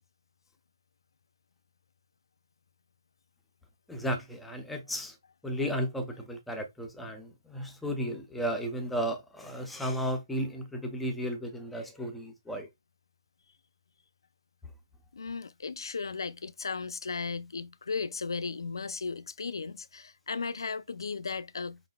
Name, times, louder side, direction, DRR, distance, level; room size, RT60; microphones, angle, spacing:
voice 1, 3.9-5.2 5.4-12.7, equal, ahead, 0.4 m, -34 dB
voice 2, 15.1-21.8, left 4 dB, 75° left, 0.4 m, -36 dB
5.4 x 3.9 x 2.2 m
hypercardioid pair, 180°, 2 cm